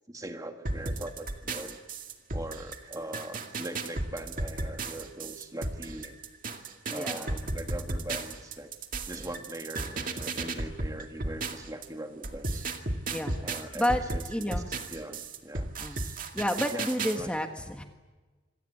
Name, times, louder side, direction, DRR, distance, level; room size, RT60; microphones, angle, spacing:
voice 1, 0.1-1.8 2.3-6.2 6.9-8.7 9.0-12.7 13.4-15.7 16.0-16.2 16.7-16.9 17.1-17.3, right 1 dB, 15° right, 6 dB, 1.7 m, -41 dB
sound 1, 0.6-11.9 12.2-17.2, right 2 dB, 45° right, 2.2 m, -34 dB
voice 2, 6.9-7.3 9.1-9.3 13.1-13.4 13.7-14.0 14.3-14.7 15.8-16.0 16.3-17.8, left 1 dB, 5° left, 4 dB, 1.4 m, -30 dB
26.5 x 22.5 x 8.6 m, 1.3 s
head